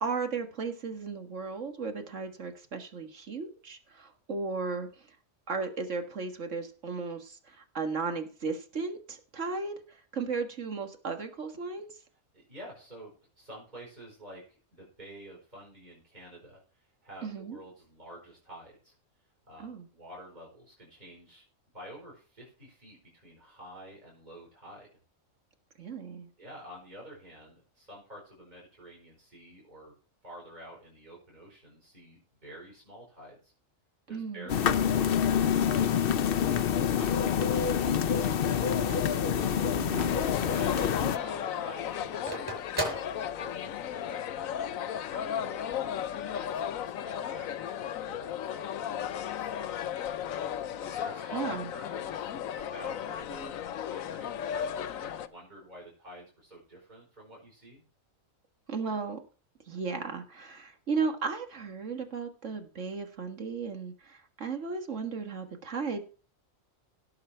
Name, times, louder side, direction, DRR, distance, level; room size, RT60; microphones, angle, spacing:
voice 1, 0.0-5.1 5.5-12.0 17.2-17.6 19.6-19.9 25.8-26.3 34.1-34.5 39.8-40.1 51.3-51.7 58.7-59.2 59.7-66.0, right 4 dB, 65° right, 5 dB, 1.9 m, -35 dB
voice 2, 12.3-13.1 13.4-18.9 19.5-21.4 21.7-24.9 26.4-29.9 30.2-33.5 34.1-38.4 39.3-46.0 46.3-49.9 50.3-52.3 52.6-57.8, right 1 dB, 35° right, -3 dB, 5.2 m, -49 dB
sound 1, 34.5-41.2, left 8 dB, 55° left, 0.7 m, -26 dB
Telephone, 36.8-40.2 40.6-40.7 41.0-43.9, right 2 dB, 15° right, 4.7 m, -38 dB
sound 2, 40.1-55.3, left 9 dB, 85° left, 1.1 m, -35 dB
17.5 x 6.8 x 4.4 m, 0.38 s
omnidirectional pair, 1.4 m